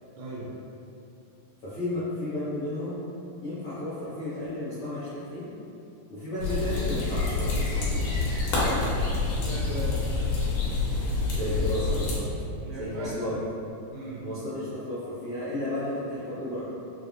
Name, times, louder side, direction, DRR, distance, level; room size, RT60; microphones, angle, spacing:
voice 1, 0.2-0.5 8.6-10.2 12.6-13.4 13.9-14.3, right 2 dB, 80° right, -6 dB, 1.7 m, -38 dB
voice 2, 1.6-3.0 3.4-5.5 6.1-8.0 11.3-12.2 12.7-13.4 14.2-16.6, left 1 dB, 70° left, -15 dB, 1.3 m, -33 dB
sound 1, 6.4-12.2, left 3 dB, 90° left, 2.4 m, -27 dB
6.0 x 2.0 x 2.5 m, 2.7 s
omnidirectional pair, 3.7 m